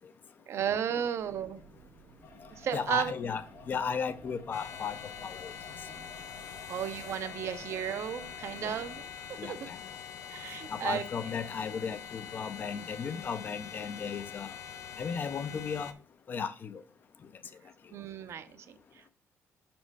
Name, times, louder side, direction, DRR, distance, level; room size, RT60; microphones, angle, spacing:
voice 1, 0.5-1.6 2.5-3.1 6.7-9.0 9.3-9.6 10.3-11.0 17.9-19.1, right 9 dB, 55° right, 0.6 m, -34 dB
sound 1, 1.1-9.0, right 5 dB, 85° right, 1.3 m, -57 dB
sound 2, 2.2-9.0, left 5 dB, 60° left, 1.6 m, -54 dB
voice 2, 2.7-3.4 3.7-5.5 8.6-8.8 9.4-9.8 10.7-14.5 15.0-15.9 16.3-16.8, left 6 dB, 35° left, 0.5 m, -35 dB
sound 3, 4.5-15.9, left 8 dB, 80° left, 0.6 m, -44 dB
6.2 x 4.3 x 4.6 m
cardioid pair, 165°, 5 cm